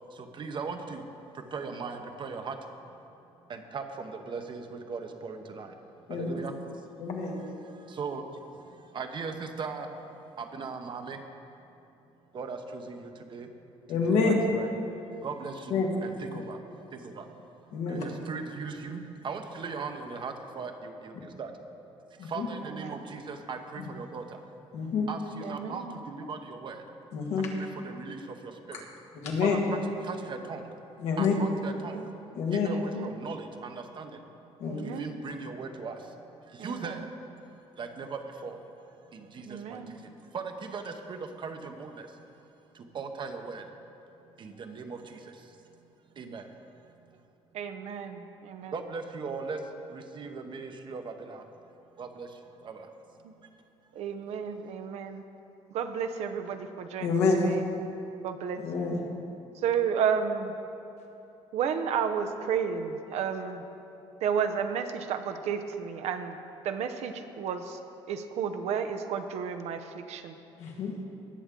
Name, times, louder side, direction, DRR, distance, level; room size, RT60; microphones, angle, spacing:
voice 1, 0.1-1.1 1.3-2.6 2.8-3.0 3.4-5.8 6.1-11.3 12.3-13.5 13.9-14.7 15.1-21.5 22.1-24.4 25.1-26.8 27.6-28.9 29.4-30.7 31.2-34.2 34.8-38.6 39.1-42.2 42.7-43.8 44.3-45.9 46.1-47.2 48.7-51.5 52.0-52.9, right 4 dB, 45° right, 6 dB, 0.9 m, -39 dB
voice 2, 7.0-7.4 13.9-14.3 15.7-15.9 17.7-18.0 22.2-22.5 24.7-25.1 27.1-27.5 29.2-29.6 31.0-31.3 32.4-32.7 34.6-34.8 57.0-57.5 58.6-59.0 70.6-70.9, left 5 dB, 80° left, 0 dB, 1.7 m, -27 dB
voice 3, 25.4-26.0 31.9-32.1 32.7-33.2 34.6-35.2 36.6-37.0 39.4-40.0 47.5-48.7 53.2-53.3 53.9-55.2 55.7-57.6 58.2-58.8 59.6-60.5 61.5-63.6 64.2-66.4 66.6-67.8 68.1-70.4, right 7 dB, 75° right, 7 dB, 0.8 m, -32 dB
18.5 x 7.1 x 3.8 m, 2.8 s
cardioid pair, 110°, 11 cm